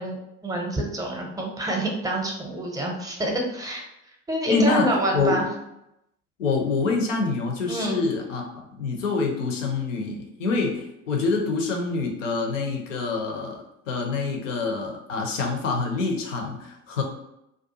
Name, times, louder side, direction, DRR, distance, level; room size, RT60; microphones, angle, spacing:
voice 1, 0.0-3.8 4.3-5.5 7.7-8.0, right 1 dB, 10° right, 1 dB, 0.6 m, -27 dB
voice 2, 4.5-5.4 6.4-8.4 8.8-17.0, left 4 dB, 75° left, 2 dB, 0.7 m, -26 dB
2.5 x 2.2 x 2.7 m, 0.84 s
figure-of-eight pair, 60°, 38 cm